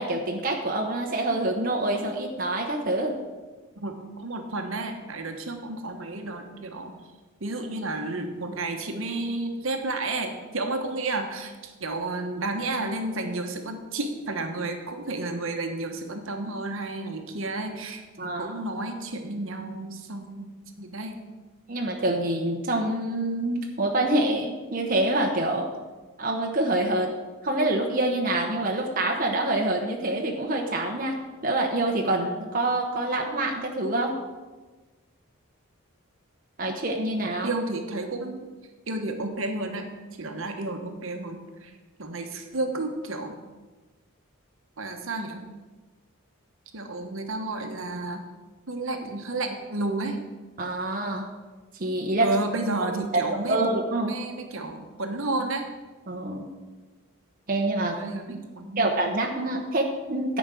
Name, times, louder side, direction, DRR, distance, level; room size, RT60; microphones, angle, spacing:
voice 1, 0.0-3.1 18.2-18.5 21.7-25.7 26.2-27.1 27.4-31.2 31.4-34.1 36.6-37.5 50.6-51.2 51.8-52.4 52.8-52.9 53.1-54.1 56.1-56.4 57.5-57.9 58.8-60.4, right 2 dB, 40° right, 0 dB, 1.0 m, -26 dB
voice 2, 3.8-6.9 7.4-20.5 20.8-21.2 37.4-38.4 38.9-39.9 40.2-41.7 42.0-43.4 44.8-45.4 46.7-48.2 48.7-50.2 52.2-53.7 54.0-55.7 57.8-59.0, right 2 dB, 65° right, 4 dB, 1.1 m, -31 dB
10.5 x 5.1 x 7.6 m, 1.3 s
head